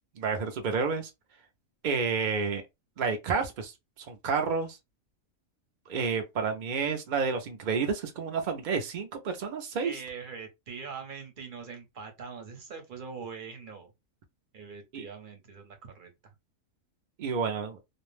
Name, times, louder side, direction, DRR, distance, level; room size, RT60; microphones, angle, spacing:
voice 1, 0.2-1.1 1.8-2.6 3.0-3.7 4.1-4.8 5.9-9.9 14.9-15.0 17.2-17.8, right 5 dB, 75° right, 0.4 m, -30 dB
voice 2, 9.8-13.9 14.5-16.1, right 5 dB, 45° right, 0.8 m, -42 dB
2.5 x 2.1 x 3.1 m
omnidirectional pair, 1.5 m